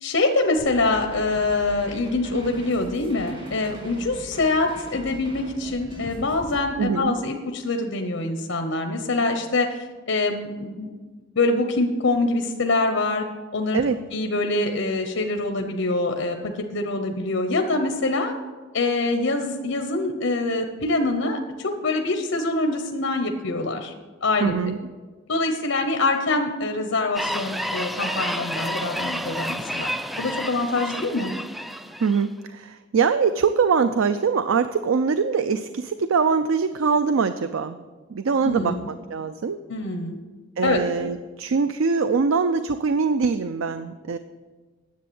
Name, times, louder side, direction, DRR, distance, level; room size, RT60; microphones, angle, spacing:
voice 1, 0.0-10.9 11.4-13.3 13.5-13.8 14.1-18.3 18.7-23.9 24.2-24.5 25.3-29.9 30.2-31.3 38.4-38.9 39.7-40.1 40.6-40.8, left 2 dB, 80° left, 5 dB, 1.0 m, -24 dB
sound 1, 0.6-6.6, equal, 25° right, 3.6 m, -41 dB
voice 2, 6.8-7.1 13.7-14.0 24.4-24.8 32.0-37.8 38.1-39.6 40.6-44.2, right 5 dB, 85° right, 11 dB, 0.5 m, -23 dB
sound 2, 27.1-32.3, equal, ahead, 0.4 m, -30 dB
10.5 x 7.6 x 7.0 m, 1.3 s
head